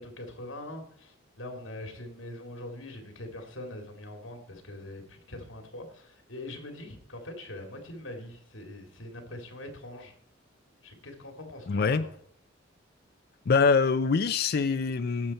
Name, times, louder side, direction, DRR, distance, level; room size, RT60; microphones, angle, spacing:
voice 1, 0.0-10.1 10.8-12.1, left 1 dB, 80° left, 2.7 m, -43 dB
voice 2, 11.7-12.1 13.5-15.3, left 5 dB, 55° left, 0.4 m, -24 dB
17.5 x 7.1 x 4.3 m
head